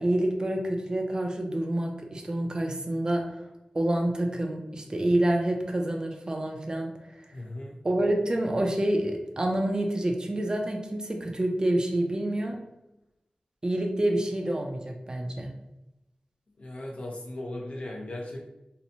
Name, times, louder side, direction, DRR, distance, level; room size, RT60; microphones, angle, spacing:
voice 1, 0.0-3.5 3.7-7.3 7.8-12.6 13.6-15.5, right 1 dB, 30° right, 2 dB, 0.4 m, -28 dB
voice 2, 7.3-7.8 16.6-18.4, left 1 dB, 55° left, -1 dB, 0.4 m, -37 dB
2.8 x 2.0 x 2.6 m, 0.93 s
wide cardioid pair, 75°, 3 cm